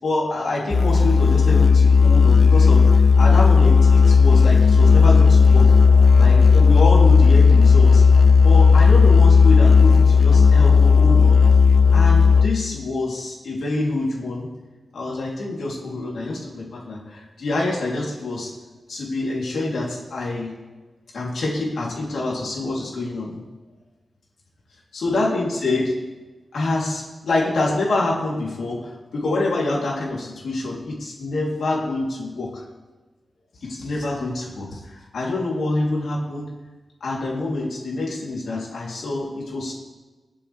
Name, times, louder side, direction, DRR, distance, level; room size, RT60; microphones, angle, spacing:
voice 1, 0.0-5.7 6.2-8.0 8.4-11.4 11.9-14.5 14.9-18.5 18.9-20.5 21.1-23.4 24.9-26.1 26.5-32.6 33.6-36.5 37.0-39.7, left 2 dB, 85° left, -4 dB, 3.3 m, -26 dB
Musical instrument, 0.7-12.7, left 5 dB, 55° left, 0.5 m, -13 dB
21.5 x 7.9 x 3.5 m, 1.2 s
cardioid pair, 60°, 0 cm